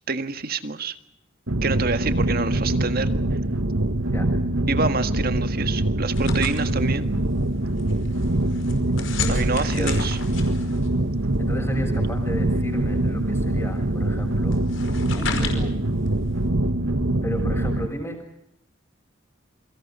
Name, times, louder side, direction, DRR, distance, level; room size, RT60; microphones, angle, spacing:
voice 1, 0.1-1.0 1.6-3.1 4.7-7.1 9.3-10.2, right 4 dB, 50° right, 10 dB, 1.7 m, -27 dB
sound 1, 1.5-17.9, right 1 dB, 90° right, 1.6 m, -24 dB
sound 2, 6.1-16.5, left 4 dB, 70° left, 5.1 m, -35 dB
voice 2, 9.2-10.0 11.4-14.6 15.2-15.7 17.2-18.2, equal, 15° left, 3 dB, 6.5 m, -33 dB
28.5 x 24.0 x 5.6 m, 0.78 s
head